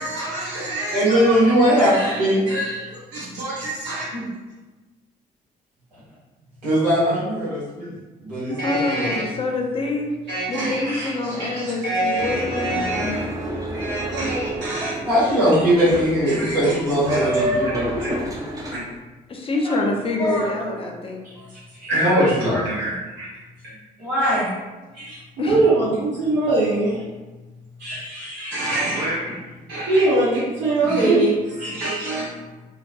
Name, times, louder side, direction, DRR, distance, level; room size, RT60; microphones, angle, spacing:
voice 1, 0.0-1.3 1.9-2.1 2.5-2.7 3.3-4.1 8.6-9.2 10.3-13.3 13.7-14.9 16.3-16.6 17.1-17.4 18.0-18.1 18.7-18.8 21.9-22.1 22.5-23.3 25.4-27.0 28.5-29.2 29.7-31.3 31.6-32.2, right 2 dB, 60° right, -9 dB, 0.7 m, -24 dB
voice 2, 0.9-2.4 3.9-4.3 6.6-7.9 8.2-9.2 15.1-18.3 19.6-19.8 20.2-20.4 21.3-21.5 21.8-22.7 24.0-24.5 24.9-25.2 27.8-29.0 29.3-29.4 29.7-29.8 30.8-31.3 31.6-32.1, equal, 85° right, -11 dB, 1.0 m, -21 dB
voice 3, 2.3-2.6 8.6-10.1 10.5-13.2 19.3-21.3 25.4-25.6, left 2 dB, 25° left, 1 dB, 0.5 m, -26 dB
Boat Water vehicle, 12.2-18.8, right 1 dB, 15° right, 0.7 m, -29 dB
2.3 x 2.2 x 2.6 m, 1.2 s
figure-of-eight pair, 40°, 21 cm